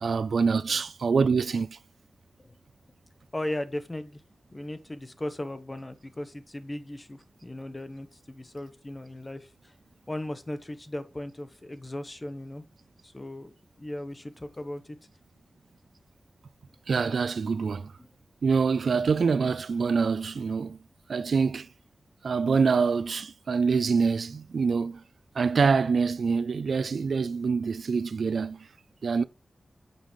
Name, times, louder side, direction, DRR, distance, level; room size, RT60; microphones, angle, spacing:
voice 1, 0.0-1.8 16.9-17.9 18.4-20.8 21.1-21.7 22.2-25.0 25.4-28.6 29.0-29.2, right 5 dB, 90° right, 0.5 m, -25 dB
voice 2, 3.3-4.2 4.5-9.7 10.1-12.6 13.0-13.5 13.8-15.0, left 1 dB, 25° left, 1.1 m, -37 dB
9.1 x 6.9 x 3.2 m
wide cardioid pair, 105°, 0 cm